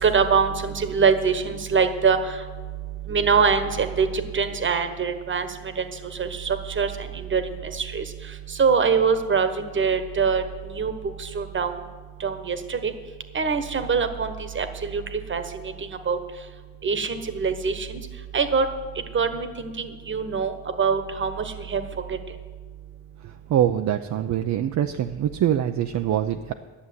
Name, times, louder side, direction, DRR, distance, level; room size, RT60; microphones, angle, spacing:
voice 1, 0.0-2.2 3.1-5.5 6.2-6.9 7.3-7.4 7.7-8.0 8.6-10.4 10.8-10.9 11.2-11.7 12.2-12.9 13.3-15.4 16.1-16.2 16.8-18.0 18.3-18.7 19.1-21.3 21.7-21.8, right 5 dB, 35° right, 9 dB, 1.3 m, -23 dB
voice 2, 23.2-26.5, right 10 dB, 55° right, 6 dB, 0.6 m, -24 dB
11.5 x 6.9 x 9.5 m, 1.5 s
cardioid pair, 95°, 35 cm